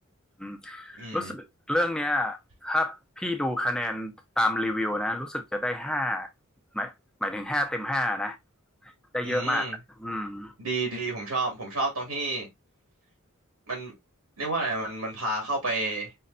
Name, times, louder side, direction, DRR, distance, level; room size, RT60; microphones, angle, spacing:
voice 1, 0.4-6.3 6.7-6.9 7.2-8.4 9.1-9.7 10.0-10.5, left 1 dB, 5° left, 0.7 m, -29 dB
voice 2, 1.0-1.3 9.2-9.8 10.6-12.5 13.7-13.9 14.4-16.2, right 2 dB, 90° right, 2.3 m, -30 dB
5.4 x 3.1 x 2.7 m
head